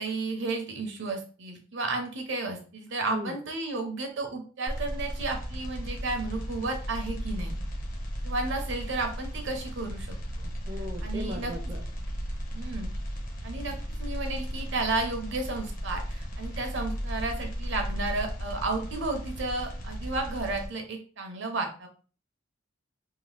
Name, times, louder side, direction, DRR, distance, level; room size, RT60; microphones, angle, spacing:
voice 1, 0.0-7.6 8.2-10.5 11.0-11.5 12.5-12.9 13.4-21.9, right 3 dB, 65° right, 4 dB, 0.7 m, -33 dB
sound 1, 4.7-20.7, equal, 45° left, 0.7 m, -35 dB
voice 2, 10.7-11.8, left 1 dB, 20° right, 0 dB, 0.4 m, -38 dB
2.8 x 2.1 x 3.1 m, 0.39 s
head